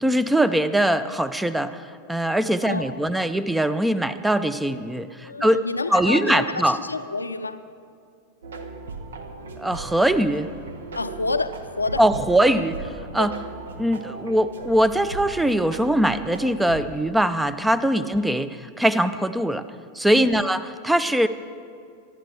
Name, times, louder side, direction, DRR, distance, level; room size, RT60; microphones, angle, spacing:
voice 1, 0.0-5.6 5.9-6.8 9.6-10.5 12.0-12.7 13.1-13.3 13.8-19.6 19.9-21.3, right 1 dB, 5° right, 13 dB, 0.5 m, -22 dB
voice 2, 2.6-3.0 5.2-7.6 10.9-12.1 12.5-12.7 13.2-13.3 17.9-18.1 20.1-20.5, left 3 dB, 80° left, 10 dB, 0.6 m, -29 dB
sound 1, 8.4-16.9, right 4 dB, 65° right, 0.9 m, -38 dB
23.5 x 11.5 x 3.5 m, 2.3 s
figure-of-eight pair, 90°, 0 cm